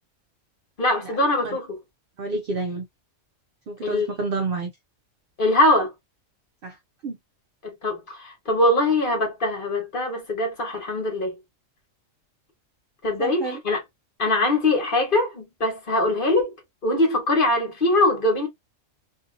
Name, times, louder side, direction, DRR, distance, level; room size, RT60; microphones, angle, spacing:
voice 1, 0.8-1.8 3.8-4.1 5.4-5.9 7.6-11.3 13.0-13.8 14.2-16.5 16.8-18.5, left 1 dB, 45° left, 1.3 m, -22 dB
voice 2, 2.2-2.9 3.7-4.7 6.6-6.7 7.0-7.2 13.2-13.6, right 3 dB, 65° right, 0.6 m, -29 dB
2.6 x 2.6 x 2.5 m
omnidirectional pair, 1.3 m